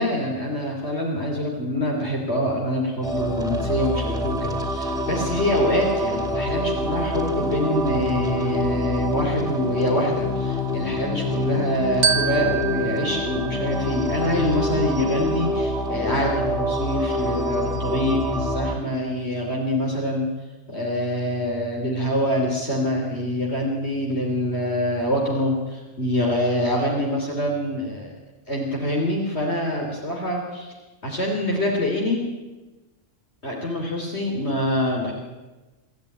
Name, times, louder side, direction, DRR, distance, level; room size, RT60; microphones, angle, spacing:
voice 1, 0.0-20.3 20.7-28.2 28.5-30.7 31.0-32.2 33.4-35.1, left 1 dB, 55° left, -1 dB, 3.5 m, -25 dB
sound 1, 3.0-18.8, left 1 dB, 5° right, 3.0 m, -26 dB
Glockenspiel, 12.0-14.5, right 6 dB, 45° right, 1.5 m, -27 dB
26.0 x 14.0 x 9.9 m, 1.2 s
omnidirectional pair, 1.3 m